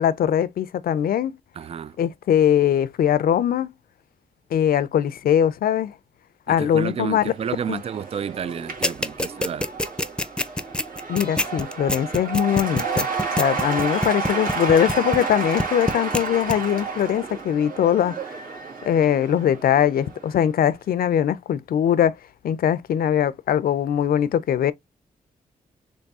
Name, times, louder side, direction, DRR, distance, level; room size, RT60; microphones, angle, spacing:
voice 1, 0.0-1.4 2.0-3.7 4.5-5.9 6.5-7.2 7.7-7.8 11.1-13.1 13.4-18.2 18.8-22.2 22.4-24.7, left 9 dB, 80° left, 0.5 m, -21 dB
voice 2, 1.6-2.0 6.5-9.7, right 7 dB, 40° right, 0.4 m, -31 dB
Cheering / Applause / Crowd, 7.0-20.4, right 4 dB, 70° right, 1.8 m, -31 dB
sound 1, 8.8-15.3 15.6-16.2 16.5-16.6, left 1 dB, 5° left, 0.6 m, -24 dB
3.6 x 3.3 x 4.0 m
cardioid pair, 80°, 15 cm